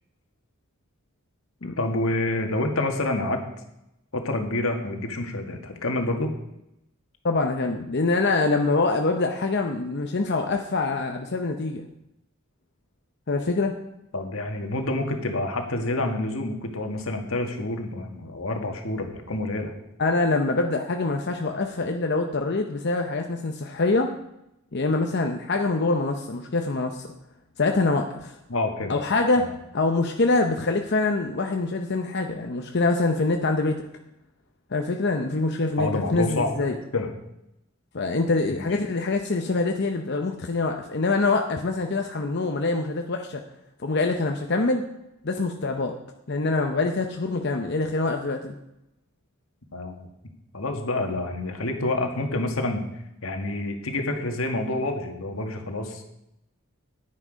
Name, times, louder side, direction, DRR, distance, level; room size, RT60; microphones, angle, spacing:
voice 1, 1.8-3.4 4.1-6.3 14.1-19.7 28.5-28.9 29.4-29.5 35.8-36.6 36.9-37.1 38.5-38.7 49.7-50.1 50.5-52.9 53.2-56.0, left 2 dB, 80° left, 4 dB, 1.8 m, -28 dB
voice 2, 7.2-11.9 13.3-13.7 20.0-24.1 24.7-27.1 27.6-28.4 28.9-29.5 29.7-33.8 34.7-36.8 37.9-43.4 43.8-44.8 45.2-45.9 46.3-48.5, left 3 dB, 55° left, 4 dB, 0.8 m, -25 dB
10.0 x 9.8 x 5.2 m, 0.84 s
head